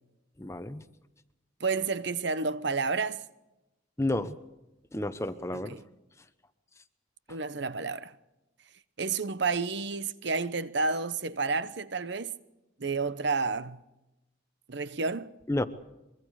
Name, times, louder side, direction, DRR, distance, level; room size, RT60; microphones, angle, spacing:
voice 1, 0.4-0.8 4.0-4.4 4.9-5.8 15.5-15.6, left 1 dB, 15° left, 0.8 m, -31 dB
voice 2, 1.6-3.2 5.6-5.8 7.3-8.1 9.0-12.3 12.8-13.8 14.7-15.3, right 4 dB, 55° right, 0.9 m, -30 dB
24.0 x 23.0 x 4.8 m
head